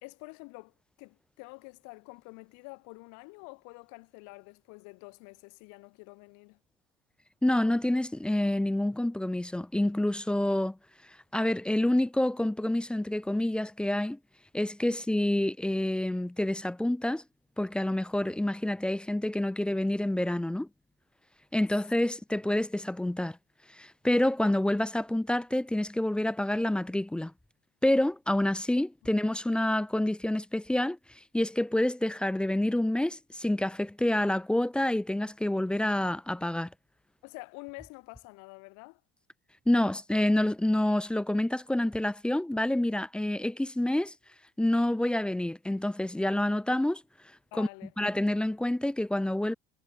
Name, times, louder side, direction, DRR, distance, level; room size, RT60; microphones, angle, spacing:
voice 1, 0.0-6.6 14.9-15.0 37.2-39.0 47.5-47.9, left 29 dB, 70° left, 2.0 m, -48 dB
voice 2, 7.4-10.8 11.3-14.2 14.5-17.2 17.6-20.7 21.5-23.4 23.7-27.3 27.8-31.0 31.3-36.7 39.7-44.1 44.6-47.0 47.6-47.7 48.0-49.5, left 1 dB, 5° left, 0.3 m, -28 dB
supercardioid pair, 110°, 31 cm